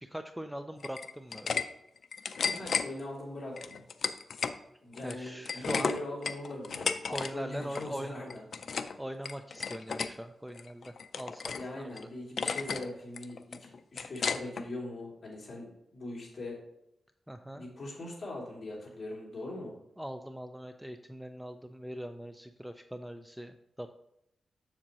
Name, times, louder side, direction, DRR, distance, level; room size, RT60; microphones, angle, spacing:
voice 1, 0.0-1.6 5.0-6.0 7.1-8.2 9.0-12.1 17.3-17.7 20.0-23.9, equal, 5° right, 7 dB, 0.3 m, -41 dB
sound 1, 0.8-1.6 2.0-2.9 3.6-4.6 4.9-7.3 7.6-7.9 8.3-8.9 9.2-10.1 10.5-11.6 12.0-12.1 12.4-12.8 13.2-14.6, left 5 dB, 60° left, 0.4 m, -33 dB
voice 2, 2.4-3.8 4.8-8.4 11.5-16.6 17.5-19.7, left 1 dB, 40° left, -4 dB, 2.7 m, -41 dB
7.3 x 7.0 x 2.9 m, 0.80 s
wide cardioid pair, 135°, 0 cm